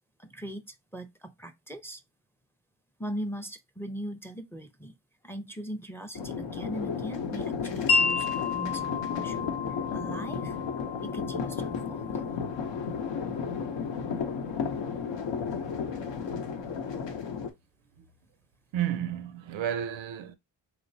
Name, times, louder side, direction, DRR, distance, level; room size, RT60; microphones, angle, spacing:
voice 1, 0.2-2.0 3.0-4.9 5.2-9.5 9.9-10.6 11.0-12.2, right 1 dB, 5° left, 0.4 m, -40 dB
sound 1, 6.2-17.5, left 6 dB, 70° left, 0.7 m, -33 dB
Wind chime, 7.9-14.0, left 4 dB, 90° left, 1.0 m, -32 dB
voice 2, 18.7-20.4, right 10 dB, 85° right, 0.5 m, -32 dB
3.0 x 2.1 x 2.6 m
cardioid pair, 55°, 46 cm